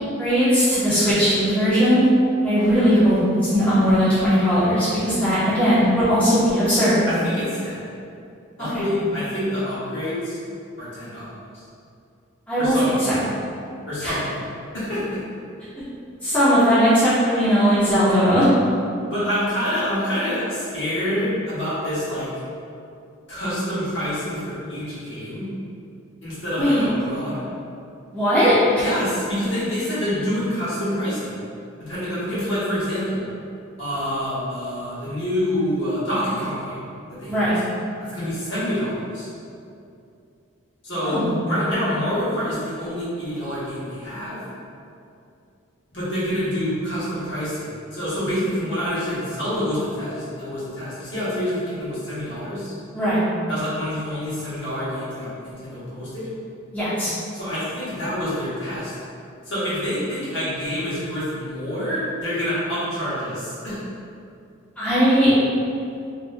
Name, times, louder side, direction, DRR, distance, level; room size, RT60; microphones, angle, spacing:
voice 1, 0.2-2.1 2.4-3.2 3.5-7.0 8.6-8.8 12.5-12.7 14.0-14.1 16.2-18.4 26.6-26.9 28.1-28.8 37.3-37.5 41.0-41.3 52.9-53.2 56.7-57.1 64.8-65.3, equal, 5° left, -14 dB, 0.9 m, -18 dB
voice 2, 7.1-7.8 8.6-10.4 10.8-11.3 11.5-11.6 12.6-13.1 13.9-14.4 14.7-15.2 19.1-22.3 23.3-25.5 26.2-27.4 28.8-31.4 31.8-33.2 33.8-36.8 37.1-37.5 38.1-39.3 40.8-44.4 45.9-52.7 53.5-56.3 57.3-58.9 59.4-63.8, equal, 60° left, -11 dB, 1.4 m, -27 dB
4.0 x 3.0 x 2.2 m, 2.5 s
head